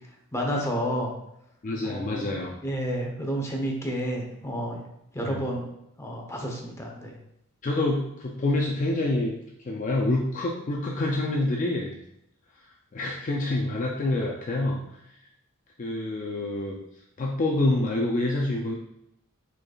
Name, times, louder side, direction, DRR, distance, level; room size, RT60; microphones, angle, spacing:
voice 1, 0.3-1.1 1.8-4.8 5.1-7.2, equal, 15° left, 0 dB, 0.8 m, -31 dB
voice 2, 1.6-2.5 5.2-5.5 7.6-12.0 12.9-14.8 15.8-16.8 17.2-18.7, left 2 dB, 35° left, -1 dB, 0.4 m, -27 dB
4.8 x 4.6 x 2.3 m, 0.81 s
head